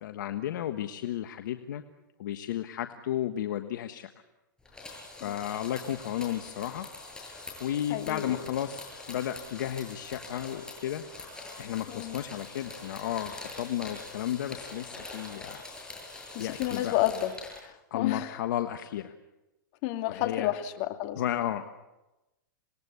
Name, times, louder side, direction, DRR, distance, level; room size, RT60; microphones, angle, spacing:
voice 1, 0.0-1.8 2.2-4.1 5.2-6.8 7.6-11.0 11.6-15.6 16.4-16.9 17.9-19.1 20.1-20.5 21.2-21.7, left 11 dB, 65° left, 8 dB, 1.4 m, -33 dB
sound 1, 4.6-17.6, left 3 dB, 5° left, 7.8 m, -44 dB
voice 2, 7.9-8.3 11.9-12.2 16.3-17.4 17.6-18.4 19.8-21.2, left 14 dB, 50° left, 7 dB, 2.4 m, -31 dB
27.0 x 20.0 x 8.3 m, 1.0 s
hypercardioid pair, 120°, 11 cm